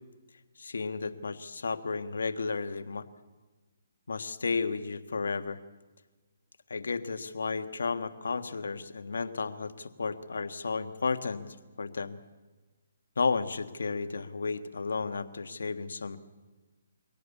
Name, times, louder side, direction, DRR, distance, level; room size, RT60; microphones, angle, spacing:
voice 1, 0.6-3.0 4.1-5.6 6.7-12.2 13.2-16.2, left 4 dB, 80° left, 10 dB, 1.5 m, -33 dB
23.5 x 17.5 x 8.5 m, 1.2 s
hypercardioid pair, 155°, 0 cm